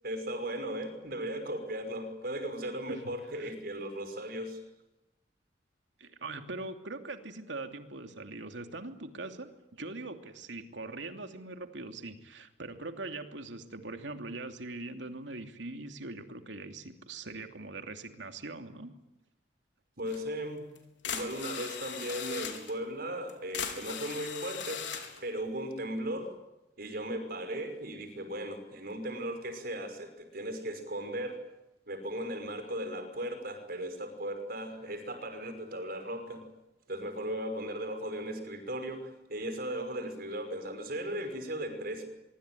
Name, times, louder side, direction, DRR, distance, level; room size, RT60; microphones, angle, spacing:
voice 1, 0.0-4.6 20.0-20.6 21.0-24.8 25.2-26.3 26.8-31.4 31.9-36.4 36.9-42.1, right 1 dB, 55° right, 7 dB, 5.6 m, -37 dB
voice 2, 6.0-18.9, right 2 dB, 85° right, 6 dB, 2.8 m, -42 dB
sound 1, 20.1-20.2 20.8-20.9 21.0-22.7 23.3-25.2, left 7 dB, 75° left, 4.2 m, -38 dB
25.0 x 23.5 x 9.3 m, 0.94 s
head